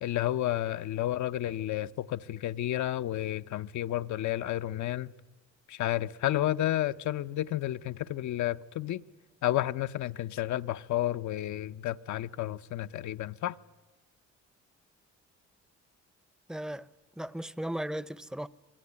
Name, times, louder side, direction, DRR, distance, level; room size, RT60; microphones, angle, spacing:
voice 1, 0.0-5.1 5.7-9.0 9.4-13.5, left 13 dB, 70° left, 0.8 m, -31 dB
voice 2, 16.5-16.9 17.2-18.5, right 1 dB, ahead, 0.7 m, -36 dB
25.0 x 20.0 x 9.7 m
cardioid pair, 90°, 30 cm